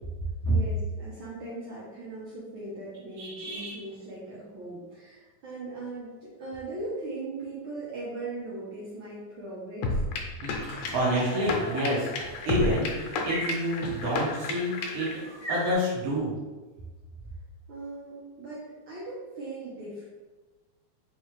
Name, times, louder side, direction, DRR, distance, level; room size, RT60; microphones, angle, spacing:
voice 1, 0.5-10.0 17.7-20.1, right 2 dB, 90° right, -8 dB, 1.1 m, -39 dB
voice 2, 3.2-3.7 10.4-15.1 15.5-16.3, equal, 60° right, -6 dB, 0.9 m, -28 dB
sound 1, 9.8-15.1, left 3 dB, 80° left, 1.9 m, -32 dB
sound 2, 10.7-15.7, right 1 dB, 50° left, 0.9 m, -40 dB
4.6 x 3.2 x 3.2 m, 1.2 s
omnidirectional pair, 3.5 m